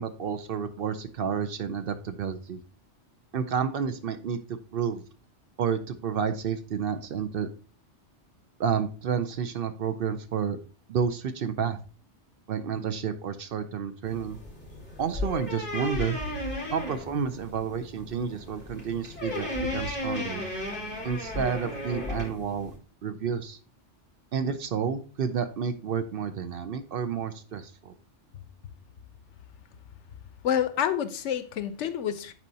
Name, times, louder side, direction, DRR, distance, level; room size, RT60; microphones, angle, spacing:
voice 1, 0.0-2.6 3.3-5.0 5.6-7.5 8.6-10.6 10.9-11.8 12.5-14.4 15.0-16.2 16.7-20.4 21.0-22.7 23.0-23.6 24.3-27.9, right 7 dB, 60° right, 0.7 m, -30 dB
sound 1, 14.0-22.8, left 1 dB, 10° left, 2.8 m, -35 dB
voice 2, 30.4-32.3, left 9 dB, 85° left, 1.0 m, -28 dB
10.5 x 4.3 x 2.7 m
omnidirectional pair, 1.2 m